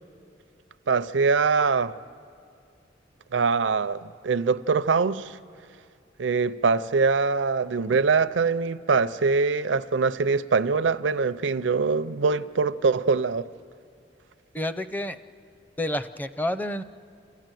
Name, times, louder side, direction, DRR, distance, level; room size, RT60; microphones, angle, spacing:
voice 1, 0.9-2.0 3.3-5.4 6.2-13.5, right 4 dB, 80° right, 0.5 m, -23 dB
voice 2, 14.5-15.2 15.8-16.8, left 1 dB, 10° left, 0.5 m, -29 dB
29.0 x 14.0 x 9.1 m
head